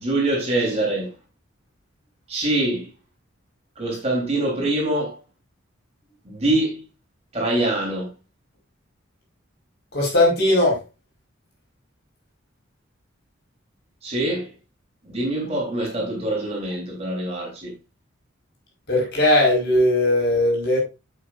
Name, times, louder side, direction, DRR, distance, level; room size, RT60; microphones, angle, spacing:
voice 1, 0.0-1.1 2.3-2.9 3.8-5.2 6.2-6.8 7.3-8.1 14.0-14.5 15.0-17.7, right 1 dB, 30° right, 3.9 m, -24 dB
voice 2, 9.9-10.8 18.9-20.8, left 1 dB, 50° left, 5.1 m, -18 dB
9.4 x 8.0 x 2.6 m
head